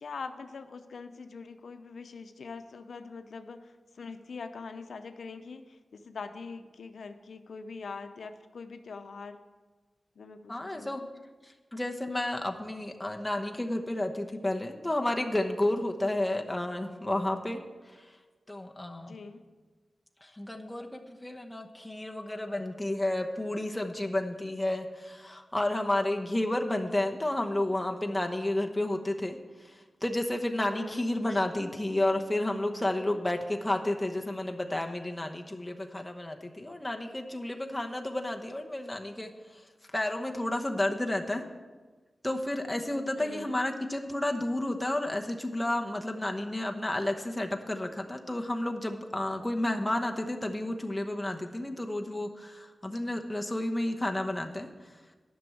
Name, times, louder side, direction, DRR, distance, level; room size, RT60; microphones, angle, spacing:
voice 1, 0.0-9.4 10.2-11.1 19.0-19.4 30.7-31.0 43.2-43.6, left 4 dB, 85° left, 8 dB, 0.6 m, -43 dB
voice 2, 10.5-11.0 11.4-18.2 18.5-19.2 20.2-41.4 42.2-55.0, left 1 dB, 10° left, 3 dB, 1.0 m, -31 dB
11.0 x 6.1 x 7.8 m, 1.3 s
wide cardioid pair, 105°, 0 cm